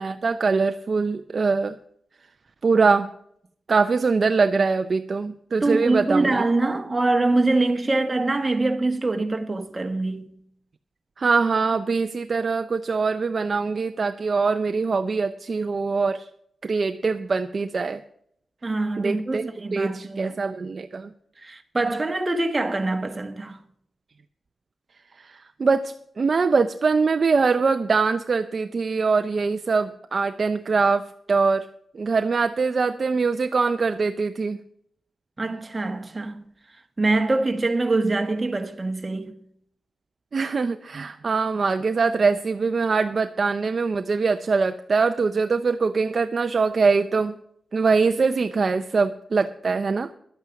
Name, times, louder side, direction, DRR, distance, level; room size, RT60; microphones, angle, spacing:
voice 1, 0.0-1.8 2.6-3.1 3.7-6.4 11.2-16.2 16.6-18.0 19.0-21.1 25.2-31.7 31.9-34.6 40.3-47.3 47.7-50.1, right 4 dB, 45° right, 0.5 m, -23 dB
voice 2, 5.6-10.3 18.6-20.4 21.4-23.6 35.4-36.4 37.0-39.4, right 2 dB, 25° right, 1.3 m, -24 dB
11.5 x 8.7 x 7.0 m
wide cardioid pair, 125°, 0 cm